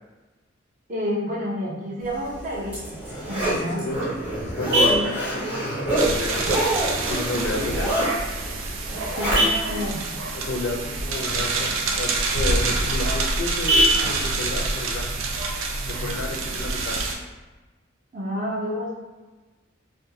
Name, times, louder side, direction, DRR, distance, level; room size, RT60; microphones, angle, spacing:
voice 1, 0.9-3.8 4.8-5.1 9.1-10.0 18.1-18.9, equal, 40° right, -4 dB, 0.6 m, -29 dB
Zipper (clothing), 2.2-9.8 10.2-10.3, right 1 dB, 10° right, 0.8 m, -27 dB
Vehicle horn car horn honking, 3.4-16.4, equal, 60° right, 1.0 m, -30 dB
voice 2, 3.6-6.4 6.7-7.9 10.3-11.7 12.0-15.1 15.8-17.0, left 2 dB, 60° left, 1 dB, 0.4 m, -31 dB
sound 1, 6.0-17.2, right 3 dB, 80° right, 0.4 m, -27 dB
2.5 x 2.3 x 2.7 m, 1.2 s
head